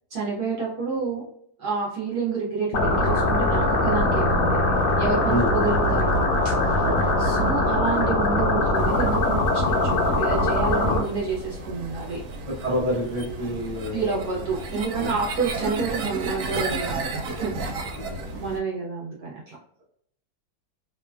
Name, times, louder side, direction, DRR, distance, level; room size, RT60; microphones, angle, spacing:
voice 1, 0.1-1.2 1.6-6.1 6.4-6.8 7.2-12.2 13.9-17.9 18.3-19.6, right 4 dB, 65° right, -4 dB, 1.1 m, -29 dB
sound 1, 2.7-11.0, left 2 dB, 80° left, 1.4 m, -22 dB
voice 2, 5.3-5.7 6.8-7.0 10.8-11.0 12.4-14.4 14.9-15.1 17.9-18.3, equal, 35° right, -5 dB, 0.6 m, -29 dB
sound 2, 8.7-18.6, right 2 dB, 90° right, 1.4 m, -33 dB
3.2 x 2.2 x 2.2 m, 0.67 s
omnidirectional pair, 2.1 m